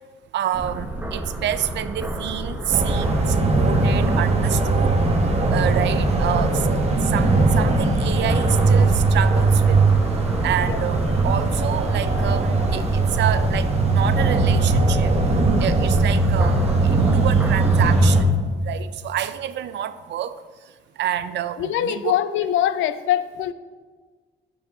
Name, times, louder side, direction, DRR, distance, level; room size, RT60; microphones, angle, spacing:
voice 1, 0.3-4.9 5.5-6.6 7.1-9.8 10.4-15.1 15.6-16.6 16.9-18.3 18.6-20.3 21.0-22.1, right 11 dB, 65° right, 13 dB, 0.4 m, -28 dB
sound 1, 0.5-18.2, right 1 dB, 10° right, 1.2 m, -31 dB
sound 2, 2.7-18.2, right 3 dB, 30° right, 1.0 m, -19 dB
voice 2, 21.6-23.5, left 11 dB, 80° left, 12 dB, 0.4 m, -23 dB
8.6 x 6.7 x 2.7 m, 1.4 s
cardioid pair, 90°, 20 cm